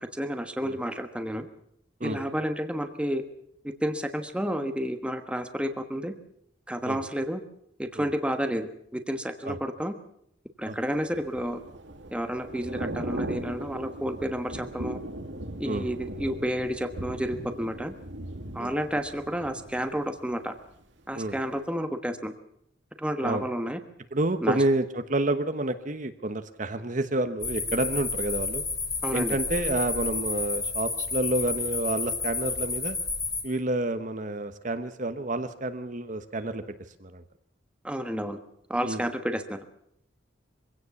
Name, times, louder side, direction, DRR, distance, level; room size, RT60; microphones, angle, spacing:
voice 1, 0.0-1.5 2.0-3.2 3.6-6.2 6.7-7.4 7.8-9.9 10.6-11.6 12.1-15.0 15.6-17.9 18.5-20.5 21.1-22.3 23.0-23.8 24.4-24.6 29.0-29.4 37.8-38.4 38.7-39.6, equal, 5° right, 7 dB, 1.2 m, -30 dB
Thunder / Rain, 10.9-20.8 21.2-21.4, right 1 dB, 75° right, 1.9 m, -39 dB
voice 2, 24.1-28.6 29.1-33.0 33.4-36.6 37.0-37.2 38.8-39.0, right 2 dB, 45° right, 10 dB, 1.1 m, -29 dB
sound 1, 27.4-33.4, left 4 dB, 20° left, 4.1 m, -31 dB
23.5 x 16.5 x 7.1 m, 0.72 s
head